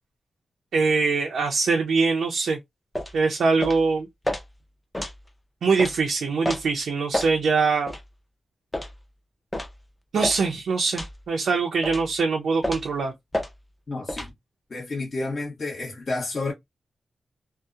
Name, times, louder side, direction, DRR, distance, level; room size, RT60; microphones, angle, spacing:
voice 1, 0.7-2.6 3.1-4.1 5.6-7.9 10.1-13.1, right 4 dB, 85° right, 0.5 m, -23 dB
sound 1, 2.9-3.1 3.6-3.8 4.2-4.4 4.9-5.2 5.8-5.9 6.4-6.6 7.1-7.3 7.9-8.0 8.7-8.9 9.5-9.7 10.2-10.4 11.0-11.2 11.8-12.1 12.6-12.9 13.3-13.5 14.1-14.3, left 1 dB, 10° left, 0.4 m, -29 dB
voice 2, 13.9-14.3 14.7-16.5, left 3 dB, 40° left, 0.8 m, -30 dB
2.7 x 2.0 x 2.3 m
wide cardioid pair, 130°, 0 cm